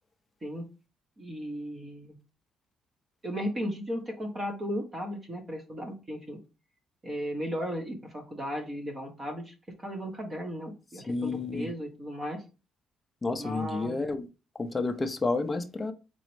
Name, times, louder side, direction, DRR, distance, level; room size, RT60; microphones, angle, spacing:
voice 1, 1.2-2.2 3.2-6.4 7.0-9.5 9.8-12.4 13.4-14.0, equal, 25° right, 0.9 m, -35 dB
voice 2, 11.1-11.7 13.2-14.3 14.6-15.9, left 3 dB, 20° left, 0.4 m, -30 dB
4.0 x 3.0 x 3.1 m
cardioid pair, 135°, 0 cm